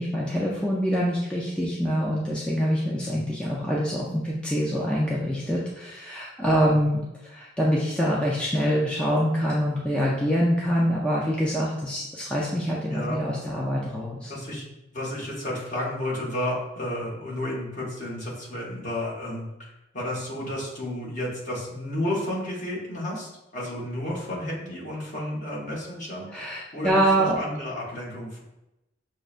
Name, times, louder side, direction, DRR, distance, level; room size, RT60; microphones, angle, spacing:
voice 1, 0.0-14.3 26.3-27.3, equal, 5° left, -5 dB, 0.4 m, -25 dB
voice 2, 12.9-13.2 14.3-14.6 14.9-26.5 26.7-28.4, left 1 dB, 40° left, -4 dB, 1.1 m, -32 dB
6.3 x 2.1 x 2.4 m, 0.92 s
head